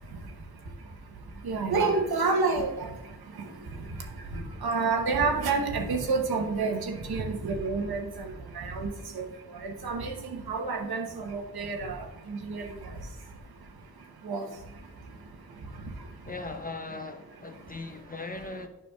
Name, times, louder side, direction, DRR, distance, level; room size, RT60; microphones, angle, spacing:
voice 1, 1.4-2.9 4.6-8.2 8.5-8.9 9.1-9.2 9.6-10.1 10.5-12.6 14.2-14.4, right 4 dB, 90° right, 1.1 m, -28 dB
voice 2, 16.3-18.7, left 3 dB, 25° left, 0.6 m, -39 dB
9.2 x 6.0 x 2.4 m
wide cardioid pair, 115°, 36 cm